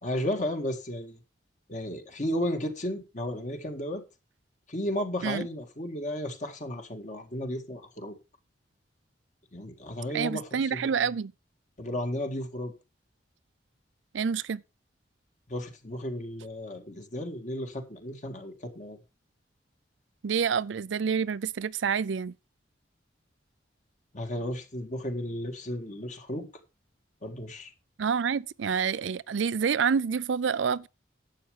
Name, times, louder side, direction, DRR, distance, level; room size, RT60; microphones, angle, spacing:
voice 1, 0.0-1.2 1.7-4.0 4.7-8.2 9.5-10.9 11.8-12.7 15.5-19.0 24.1-26.5 27.2-27.7, left 1 dB, 45° left, 1.9 m, -34 dB
voice 2, 10.1-11.3 14.1-14.6 20.2-22.3 28.0-30.9, right 6 dB, 90° right, 0.4 m, -28 dB
11.5 x 7.6 x 4.9 m
head